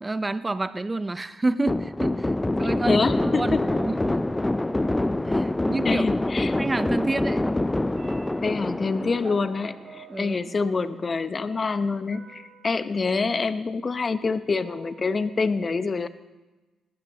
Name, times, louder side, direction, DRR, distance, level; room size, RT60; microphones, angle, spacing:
voice 1, 0.0-2.3 2.6-3.6 3.9-4.0 4.9-6.0 6.6-7.5 10.1-10.4, right 2 dB, 25° right, 14 dB, 0.7 m, -28 dB
sound 1, 1.7-10.0, left 1 dB, 15° left, 0.5 m, -26 dB
voice 2, 2.9-3.6 5.8-6.6 8.4-16.1, left 4 dB, 40° left, 13 dB, 0.9 m, -26 dB
sound 2, 3.7-5.1 6.3-6.4 6.9-7.4 7.9-13.9 14.5-15.3, right 5 dB, 55° right, 3.4 m, -50 dB
19.5 x 17.5 x 3.0 m, 1.1 s
hypercardioid pair, 45°, 0 cm